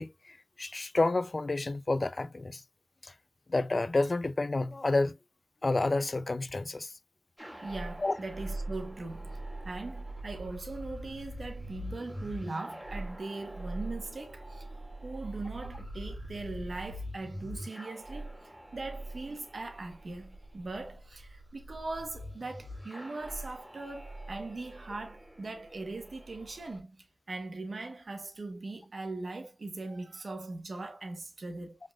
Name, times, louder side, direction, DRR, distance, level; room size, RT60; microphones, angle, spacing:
voice 1, 0.0-2.6 3.0-3.1 3.5-5.2 5.6-6.9 8.0-8.1, left 2 dB, 60° left, 0.4 m, -29 dB
sound 1, 7.4-26.8, right 1 dB, 15° right, 2.2 m, -43 dB
voice 2, 7.6-9.4 9.6-14.7 15.0-27.0 27.3-31.8, right 3 dB, 85° right, 1.1 m, -40 dB
5.1 x 3.6 x 2.4 m
wide cardioid pair, 60°, 0 cm